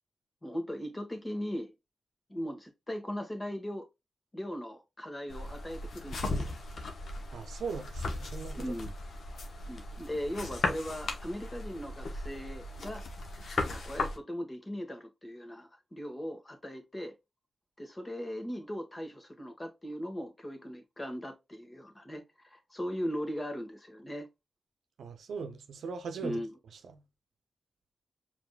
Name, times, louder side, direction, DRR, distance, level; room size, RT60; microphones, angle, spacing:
voice 1, 0.4-1.7 2.3-3.9 4.3-6.6 8.6-8.9 9.6-13.0 13.4-17.1 17.8-22.2 22.5-24.3 26.2-26.5, equal, 30° left, 1.6 m, -39 dB
sound 1, 5.3-14.2, left 2 dB, 75° left, 1.0 m, -37 dB
voice 2, 7.3-8.8 25.0-26.4 26.8-27.0, right 5 dB, 85° right, 0.6 m, -39 dB
4.9 x 3.6 x 2.4 m
cardioid pair, 45°, 0 cm